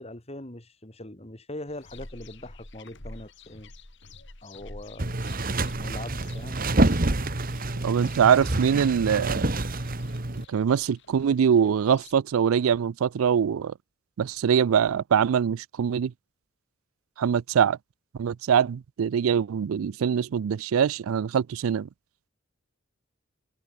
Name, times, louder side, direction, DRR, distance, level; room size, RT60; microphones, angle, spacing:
voice 1, 0.0-3.7 4.4-5.2 5.8-6.6, left 1 dB, 30° left, 2.7 m, -41 dB
sound 1, 1.7-12.1, left 2 dB, 60° left, 4.2 m, -49 dB
sound 2, 5.0-10.4, right 2 dB, 40° right, 1.5 m, -27 dB
voice 2, 7.8-9.4 10.5-13.7 14.2-16.1 17.2-17.8 18.2-21.9, right 7 dB, 80° right, 0.4 m, -23 dB
head